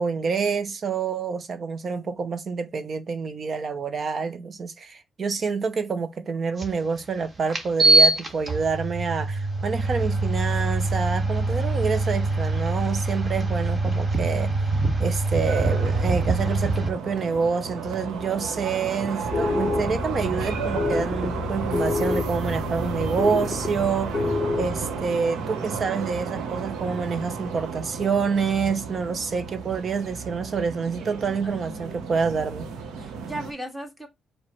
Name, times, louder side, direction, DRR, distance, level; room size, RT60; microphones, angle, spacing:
voice 1, 0.0-14.5 15.0-24.2 24.6-32.7, right 5 dB, 45° right, 0.7 m, -27 dB
sound 1, 6.6-6.7 7.5-16.9, right 2 dB, 30° right, 1.3 m, -23 dB
sound 2, 15.4-33.5, right 5 dB, 85° right, 0.8 m, -33 dB
sound 3, 19.3-25.0, left 4 dB, 30° left, 0.4 m, -28 dB
voice 2, 31.4-32.0 33.0-34.1, right 1 dB, 5° right, 1.7 m, -37 dB
4.7 x 2.1 x 4.3 m
cardioid pair, 90°, 0 cm